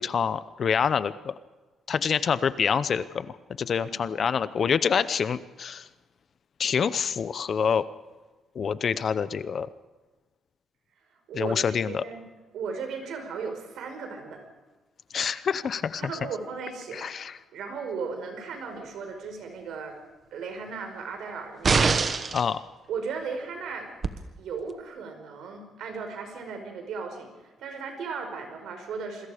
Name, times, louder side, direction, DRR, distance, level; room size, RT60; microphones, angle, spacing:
voice 1, 0.0-1.3 1.9-5.9 6.6-7.9 8.5-9.7 11.3-12.0 15.1-16.0 16.9-17.4 22.3-22.6, left 7 dB, 40° left, 15 dB, 0.7 m, -26 dB
voice 2, 3.8-4.3 11.3-12.3 12.5-14.4 16.0-17.1 17.5-20.0 20.3-22.4 22.9-23.9 24.4-29.3, right 5 dB, 70° right, 5 dB, 5.0 m, -36 dB
sound 1, 21.6-22.5 24.0-24.1, right 5 dB, 30° right, 1.1 m, -23 dB
27.5 x 21.5 x 5.1 m, 1.2 s
cardioid pair, 170°, 0 cm